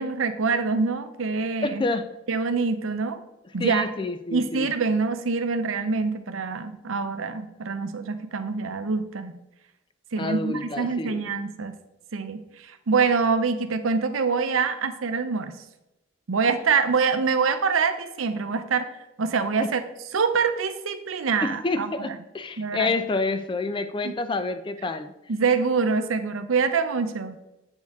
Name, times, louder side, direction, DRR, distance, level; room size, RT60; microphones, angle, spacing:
voice 1, 0.0-1.8 2.3-3.2 3.5-3.9 4.3-9.3 10.1-11.7 12.1-12.4 12.9-15.5 16.3-18.9 19.2-19.8 20.1-22.2 22.6-23.0 24.0-24.1 25.3-27.4, right 5 dB, 90° right, 10 dB, 0.6 m, -25 dB
voice 2, 1.6-2.1 3.6-4.7 10.2-11.3 21.4-25.1, left 3 dB, 25° left, 10 dB, 0.4 m, -28 dB
7.9 x 4.5 x 3.5 m, 0.91 s
head